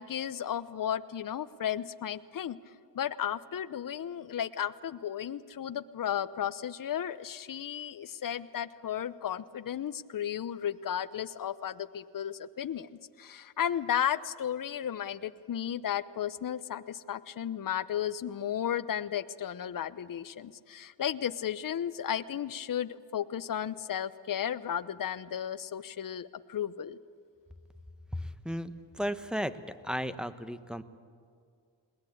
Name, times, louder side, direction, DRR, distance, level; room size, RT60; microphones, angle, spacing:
voice 1, 0.0-2.6 2.9-12.9 13.2-27.0, left 9 dB, 50° left, 14 dB, 0.9 m, -34 dB
voice 2, 28.1-29.6 29.8-30.8, equal, ahead, 12 dB, 1.1 m, -34 dB
21.0 x 19.0 x 8.7 m, 2.2 s
cardioid pair, 70°, 44 cm